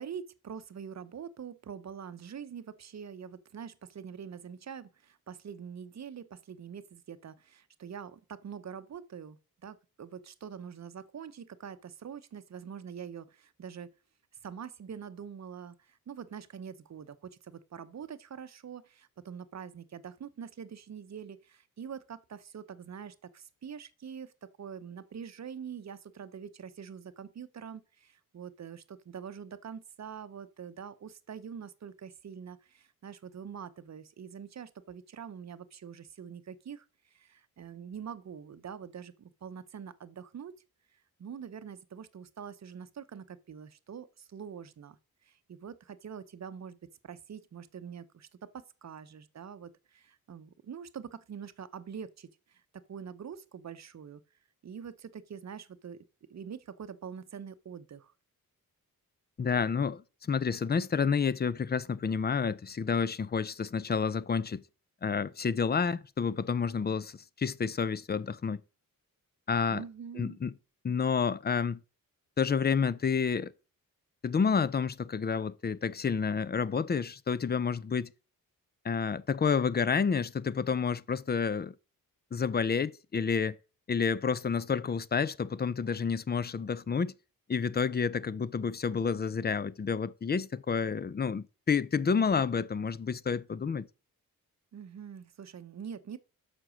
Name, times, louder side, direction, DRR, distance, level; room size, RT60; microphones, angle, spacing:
voice 1, 0.0-13.9 14.4-36.9 37.1-40.5 41.2-45.0 45.2-46.8 47.0-54.2 54.6-56.0 56.3-58.1 69.7-70.4 94.7-96.2, right 7 dB, 50° right, 0.8 m, -44 dB
voice 2, 59.4-64.6 65.0-68.6 69.5-69.8 70.2-70.5 70.8-71.8 72.4-73.5 74.2-78.1 78.8-81.7 82.3-83.6 83.9-87.1 87.5-93.9, left 6 dB, 30° left, 0.5 m, -29 dB
7.7 x 6.1 x 6.2 m
cardioid pair, 105°, 35 cm